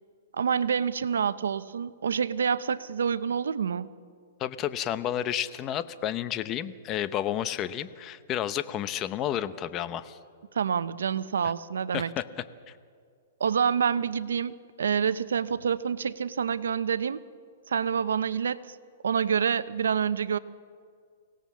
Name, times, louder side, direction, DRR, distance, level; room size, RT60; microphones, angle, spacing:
voice 1, 0.4-3.9 10.5-12.1 13.4-17.2 17.7-18.8 19.0-20.4, right 7 dB, 90° right, 15 dB, 0.8 m, -27 dB
voice 2, 4.4-10.2 11.4-11.5 11.9-12.4, left 11 dB, 25° left, 13 dB, 0.8 m, -31 dB
24.5 x 18.0 x 7.3 m, 2.1 s
hypercardioid pair, 150°, 0 cm